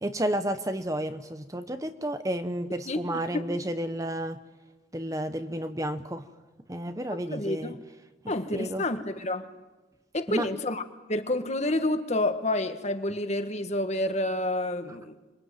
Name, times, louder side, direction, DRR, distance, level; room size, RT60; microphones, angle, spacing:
voice 1, 0.0-4.4 4.9-6.3 6.7-7.8 8.5-8.8 10.3-10.5, right 1 dB, 15° right, 9 dB, 0.8 m, -31 dB
voice 2, 7.3-7.7 8.3-9.5 10.1-10.8 11.1-15.2, left 1 dB, 35° left, 8 dB, 1.6 m, -29 dB
27.0 x 23.0 x 9.2 m, 1.2 s
head